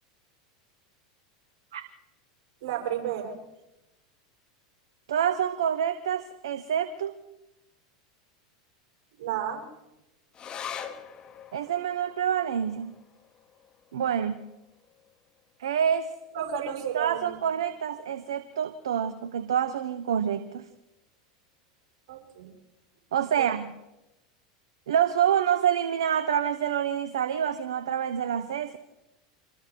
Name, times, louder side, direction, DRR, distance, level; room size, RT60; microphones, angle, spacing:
voice 1, 2.6-3.4 9.2-9.6 16.3-17.4 22.1-22.5 23.3-23.5, right 9 dB, 60° right, 1 dB, 6.9 m, -32 dB
voice 2, 5.1-7.1 11.5-12.9 13.9-14.4 15.6-16.1 16.9-20.7 23.1-23.7 24.9-28.8, right 9 dB, 75° right, 11 dB, 1.2 m, -27 dB
sound 1, 10.3-17.1 17.4-17.5 17.9-18.5 19.1-19.2, left 8 dB, 30° left, 2.3 m, -45 dB
26.0 x 22.0 x 4.7 m, 0.97 s
hypercardioid pair, 90°, 3 cm